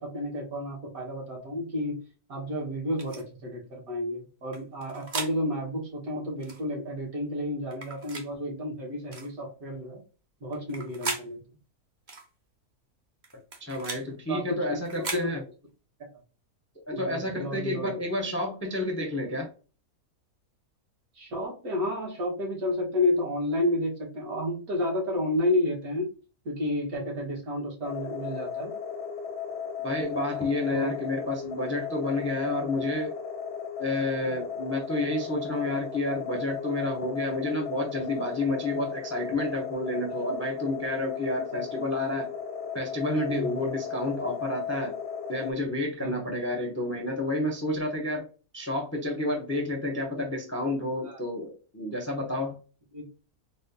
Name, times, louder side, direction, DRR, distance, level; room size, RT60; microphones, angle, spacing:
voice 1, 0.0-2.0 2.3-10.0 10.4-11.4 14.3-15.4 16.9-18.0 21.1-26.1 26.4-28.7 30.7-30.9 43.3-43.6 46.0-46.2 51.0-51.2 52.9-53.0, left 1 dB, 75° right, -2 dB, 1.7 m, -31 dB
sound 1, 3.0-3.2 4.5-5.3 6.4-6.6 7.7-8.3 9.1-9.3 10.5-11.3 12.1-12.3 13.2-14.0 14.8-15.3, right 3 dB, 45° right, 0.6 m, -37 dB
voice 2, 13.6-15.4 16.9-19.5 29.8-33.2 33.8-42.3 42.7-44.9 45.3-48.2 48.5-52.6, left 2 dB, 25° left, 1 dB, 0.3 m, -30 dB
sound 2, 27.8-45.5, left 6 dB, 65° left, 0.7 m, -36 dB
4.1 x 2.1 x 2.6 m, 0.35 s
omnidirectional pair, 1.6 m